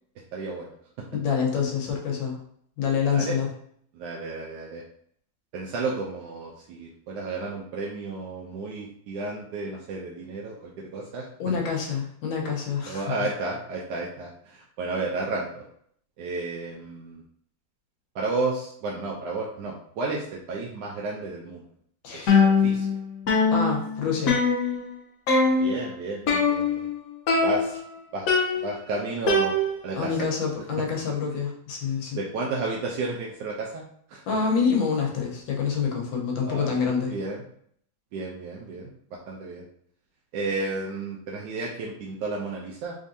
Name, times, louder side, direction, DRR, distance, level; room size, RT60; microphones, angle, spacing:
voice 1, 0.3-0.7 3.1-3.4 3.9-4.8 5.5-11.3 12.9-15.7 16.2-17.2 18.1-21.6 22.1-22.4 22.6-23.0 25.6-26.9 27.4-27.8 28.1-28.3 28.6-29.5 29.8-30.2 32.1-34.2 36.4-36.8 37.1-37.4 38.1-39.6 40.3-43.0, right 3 dB, 75° right, -2 dB, 1.1 m, -32 dB
voice 2, 1.1-2.4 2.8-3.5 11.4-13.0 22.0-22.5 23.5-24.4 29.9-32.2 34.3-37.1, left 6 dB, 90° left, 0 dB, 1.6 m, -27 dB
sound 1, 22.3-23.0 23.3-25.0 25.3-25.8 26.3-26.9 27.3-27.9 28.3-30.0, left 4 dB, 60° left, 0.9 m, -22 dB
3.7 x 3.4 x 2.6 m, 0.65 s
omnidirectional pair, 2.0 m